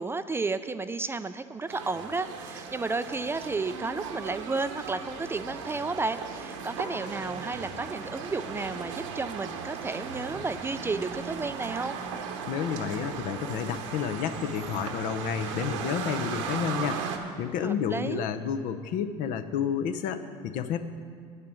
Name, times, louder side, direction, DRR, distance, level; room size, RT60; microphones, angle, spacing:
voice 1, 0.0-12.0 17.6-18.2, right 3 dB, 15° right, 11 dB, 0.3 m, -32 dB
sound 1, 1.7-17.2, right 6 dB, 85° right, 1.1 m, -37 dB
voice 2, 12.5-17.0 17.4-20.9, left 7 dB, 60° left, 10 dB, 0.7 m, -30 dB
8.9 x 6.7 x 8.3 m, 2.1 s
supercardioid pair, 95°, 15 cm